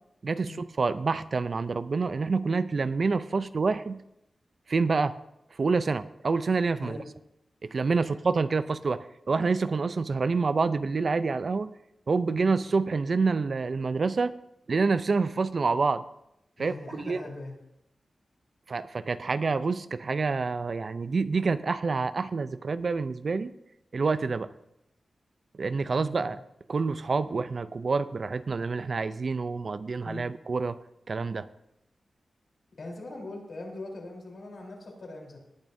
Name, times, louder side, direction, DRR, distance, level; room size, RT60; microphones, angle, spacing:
voice 1, 0.2-4.0 4.7-5.1 5.6-7.0 7.6-11.7 12.1-14.3 14.7-16.0 16.6-17.3 18.7-23.5 23.9-24.5 25.6-26.4 26.7-30.8 31.1-31.5, right 4 dB, 55° right, 13 dB, 0.4 m, -27 dB
voice 2, 16.6-17.6 25.9-26.4 30.0-30.3 32.8-35.4, left 2 dB, 65° left, -1 dB, 3.7 m, -41 dB
18.5 x 10.5 x 2.7 m, 0.83 s
wide cardioid pair, 120°, 0 cm